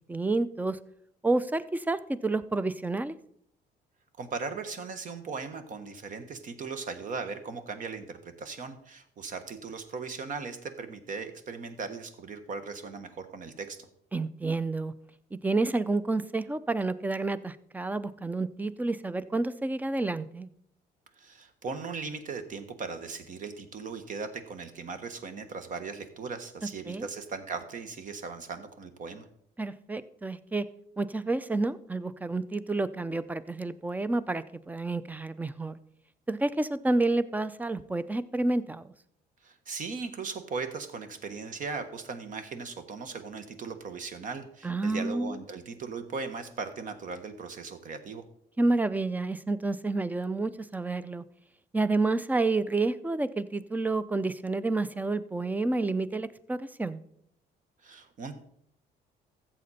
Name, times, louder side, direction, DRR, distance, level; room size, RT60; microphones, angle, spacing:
voice 1, 0.1-0.8 1.2-3.2 14.1-14.9 15.3-20.5 26.9-27.1 29.6-30.7 31.0-35.8 36.3-38.9 44.6-45.4 48.6-51.2 51.7-57.0, right 2 dB, 10° right, 15 dB, 0.5 m, -29 dB
voice 2, 4.2-13.8 21.2-29.3 39.4-48.2 57.8-58.4, right 4 dB, 50° right, 9 dB, 1.4 m, -38 dB
14.0 x 7.7 x 4.2 m, 0.71 s
cardioid pair, 110°, 17 cm